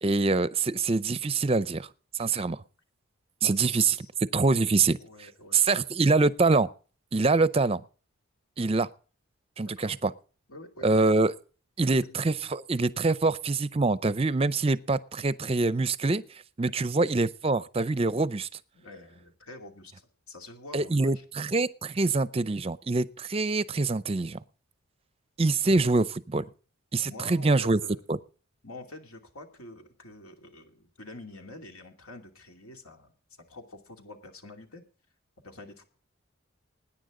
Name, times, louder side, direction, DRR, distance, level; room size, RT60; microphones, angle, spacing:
voice 1, 0.0-1.9 2.2-2.6 3.4-4.0 4.3-5.0 5.5-6.7 7.1-7.8 8.6-8.9 9.6-10.1 10.8-11.3 11.8-16.2 16.6-18.5 20.7-24.4 25.4-26.4 26.9-27.8 28.1-28.2, right 3 dB, 25° right, 0.5 m, -25 dB
voice 2, 3.5-4.1 5.0-5.9 7.3-7.4 9.6-9.9 10.5-11.0 12.0-12.2 16.2-16.3 16.7-17.0 18.7-21.2 27.0-28.0 28.6-33.1 33.5-34.8 35.4-35.8, left 2 dB, 85° left, 2.7 m, -47 dB
20.5 x 10.0 x 3.8 m
head